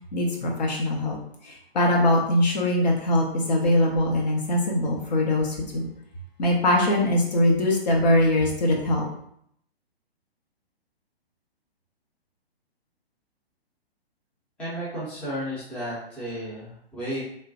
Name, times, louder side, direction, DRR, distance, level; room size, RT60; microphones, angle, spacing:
voice 1, 0.1-1.2 1.4-5.9 6.4-9.0, left 1 dB, 45° left, -1 dB, 0.6 m, -22 dB
voice 2, 14.6-17.2, equal, 5° left, -9 dB, 0.6 m, -33 dB
3.1 x 2.1 x 2.7 m, 0.70 s
figure-of-eight pair, 120°, 31 cm